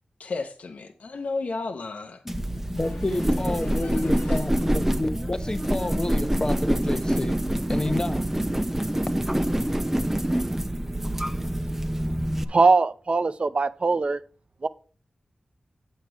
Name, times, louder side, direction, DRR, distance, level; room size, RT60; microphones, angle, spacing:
voice 1, 0.2-2.2 2.8-4.5, left 3 dB, 85° left, 0.8 m, -34 dB
voice 2, 2.2-7.4 7.7-8.2, left 2 dB, 30° left, 0.8 m, -29 dB
sound 1, 2.3-12.4, right 1 dB, 15° right, 0.7 m, -26 dB
voice 3, 12.5-14.2 14.6-14.7, right 3 dB, 55° right, 0.5 m, -21 dB
8.2 x 6.6 x 4.5 m
cardioid pair, 50°, 2 cm